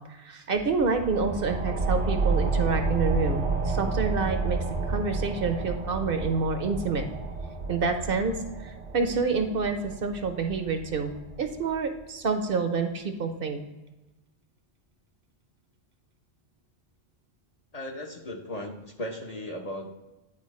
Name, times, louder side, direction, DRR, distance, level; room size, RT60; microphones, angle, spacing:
voice 1, 0.2-4.6 4.9-7.0 7.7-8.4 8.6-11.1 11.4-13.6, right 4 dB, 60° right, 6 dB, 0.9 m, -28 dB
sound 1, 0.5-11.8, right 3 dB, 90° right, 1.3 m, -30 dB
voice 2, 17.7-19.9, left 1 dB, 40° left, 1 dB, 0.7 m, -36 dB
9.8 x 4.3 x 3.1 m, 1.0 s
omnidirectional pair, 1.1 m